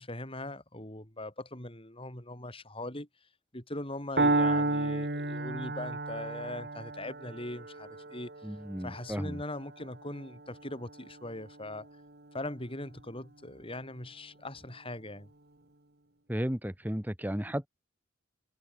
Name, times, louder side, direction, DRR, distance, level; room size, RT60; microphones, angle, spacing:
voice 1, 0.0-3.1 3.5-8.3 8.8-11.9 12.3-15.3, left 1 dB, 30° left, 6.9 m, -40 dB
Piano, 4.2-12.1, right 2 dB, 55° right, 3.3 m, -33 dB
voice 2, 8.4-9.4 16.3-17.7, equal, 10° right, 2.1 m, -34 dB
head